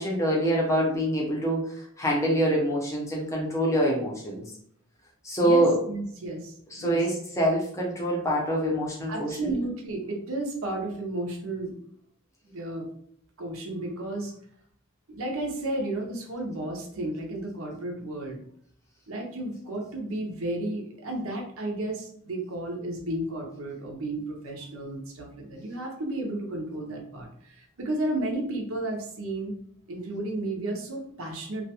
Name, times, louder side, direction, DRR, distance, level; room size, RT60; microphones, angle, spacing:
voice 1, 0.0-1.6 2.0-4.4 5.2-5.8 6.7-9.4, right 1 dB, 15° left, -3 dB, 0.6 m, -25 dB
voice 2, 5.4-7.0 9.1-11.7 12.4-12.9 13.4-14.3 15.1-18.4 19.1-29.5 29.9-31.6, right 1 dB, 70° right, 1 dB, 0.6 m, -33 dB
2.4 x 2.2 x 2.8 m, 0.65 s
head